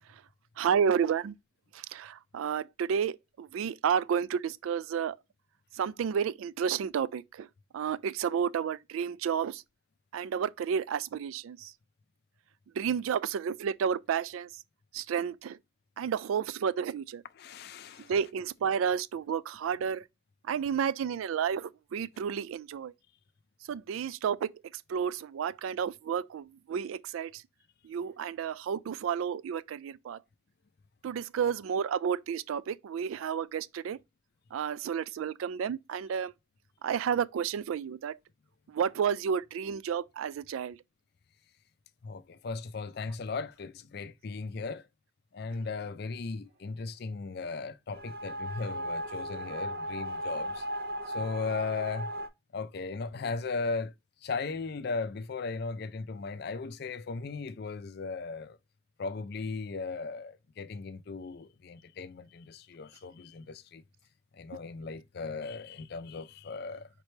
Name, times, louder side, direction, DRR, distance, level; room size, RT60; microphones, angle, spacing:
voice 1, 0.6-1.3 1.9-5.2 5.8-7.5 7.7-9.6 10.1-11.7 12.8-14.5 14.9-15.6 16.0-17.2 18.1-20.0 20.5-22.9 23.7-24.5 24.9-27.4 27.8-30.2 31.0-34.0 34.5-36.3 36.8-38.2 38.7-40.8, right 7 dB, 90° right, 0.3 m, -31 dB
voice 2, 17.4-18.1 42.0-44.8 45.3-50.6 51.1-52.1 52.5-53.9 54.2-58.6 59.0-63.8 64.4-66.9, left 4 dB, 50° left, 0.4 m, -37 dB
sound 1, 47.9-52.3, equal, 50° right, 0.7 m, -36 dB
5.1 x 3.2 x 3.2 m
head